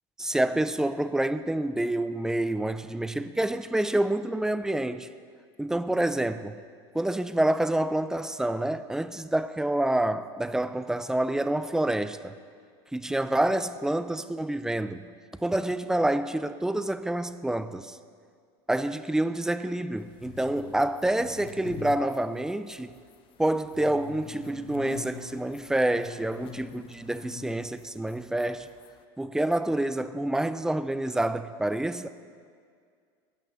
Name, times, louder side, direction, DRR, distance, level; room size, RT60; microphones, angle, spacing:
voice 1, 0.2-5.1 5.6-6.6 6.9-12.3 12.9-15.1 15.4-18.0 18.7-23.0 23.4-28.7 29.2-32.1, right 1 dB, 5° right, 0.4 m, -27 dB
sound 1, 20.1-29.0, left 9 dB, 40° left, 0.7 m, -46 dB
16.0 x 6.0 x 5.6 m
supercardioid pair, 105°, 13 cm